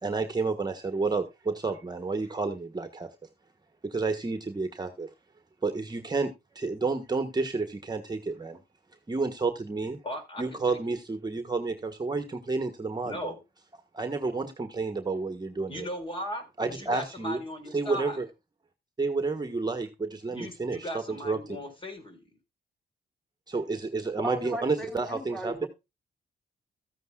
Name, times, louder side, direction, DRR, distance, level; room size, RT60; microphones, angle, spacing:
voice 1, 0.0-3.1 3.8-5.1 5.6-8.6 9.1-10.0 10.4-13.3 13.9-15.9 16.6-17.4 17.7-18.2 19.0-21.4 23.5-25.7, right 3 dB, 25° right, 8 dB, 1.4 m, -30 dB
voice 2, 10.0-11.0 13.0-13.4 15.7-18.2 20.3-22.3, equal, 30° left, 6 dB, 4.6 m, -38 dB
voice 3, 24.2-25.7, equal, 5° left, 4 dB, 3.5 m, -36 dB
14.0 x 9.3 x 2.4 m, 0.25 s
cardioid pair, 90°, 16 cm